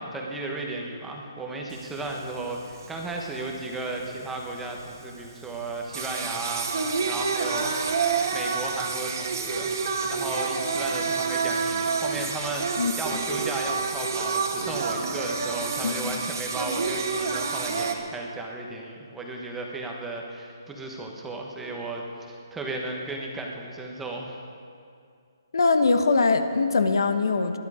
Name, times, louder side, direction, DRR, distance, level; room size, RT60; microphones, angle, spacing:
voice 1, 0.0-7.8 8.3-9.8 10.1-24.4, right 2 dB, 5° right, 0 dB, 1.1 m, -35 dB
Singing, 1.7-18.0, right 4 dB, 50° right, 1.8 m, -29 dB
voice 2, 15.8-16.3 25.5-27.6, left 4 dB, 70° left, 8 dB, 1.2 m, -22 dB
20.5 x 11.5 x 5.0 m, 2.4 s
hypercardioid pair, 170°, 2 cm